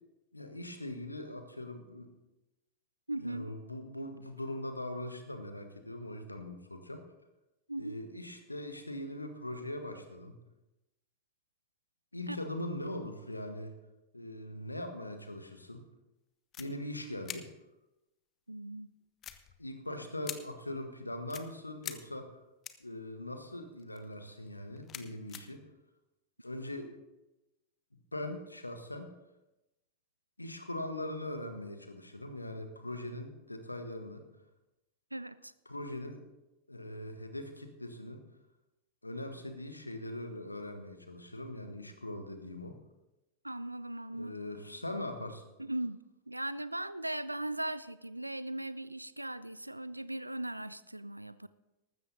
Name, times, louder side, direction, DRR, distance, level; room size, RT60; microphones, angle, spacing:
voice 1, 0.3-2.1 3.2-7.0 7.8-10.3 12.1-13.7 14.1-15.8 16.6-17.5 19.6-22.4 22.8-25.6 26.4-26.9 27.9-29.1 30.4-34.2 35.6-36.2 36.7-38.2 39.0-42.8 44.1-45.4, left 1 dB, 85° left, 7 dB, 1.5 m, -41 dB
voice 2, 3.1-3.5 7.7-7.9 12.3-12.4 18.5-18.9 35.1-35.5 43.4-44.3 45.6-51.5, right 1 dB, 85° right, 16 dB, 0.5 m, -38 dB
sound 1, 16.5-16.6 17.2-17.4 19.2-19.8 20.2-20.4 21.3-21.4 21.8-21.9 22.6-22.9 23.8-24.1 24.5-25.4, left 10 dB, 30° left, 0.9 m, -43 dB
14.5 x 13.0 x 4.0 m, 0.98 s
figure-of-eight pair, 90°, 0 cm